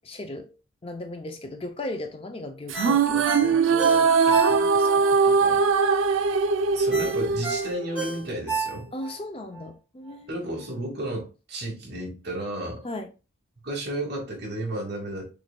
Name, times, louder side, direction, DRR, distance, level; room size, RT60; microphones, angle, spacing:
voice 1, 0.1-0.6 0.8-5.7 8.9-10.5 12.8-13.1, left 2 dB, 25° left, 0.4 m, -37 dB
Ringtone, 2.7-5.0 5.4-5.5 6.9-9.1 9.5-9.6, right 5 dB, 5° right, 1.9 m, -31 dB
sound 1, 2.7-8.2, right 5 dB, 70° right, 0.4 m, -21 dB
voice 2, 6.7-8.9 10.3-12.8 13.6-15.2, right 1 dB, 50° right, 2.0 m, -32 dB
6.3 x 3.1 x 2.2 m
head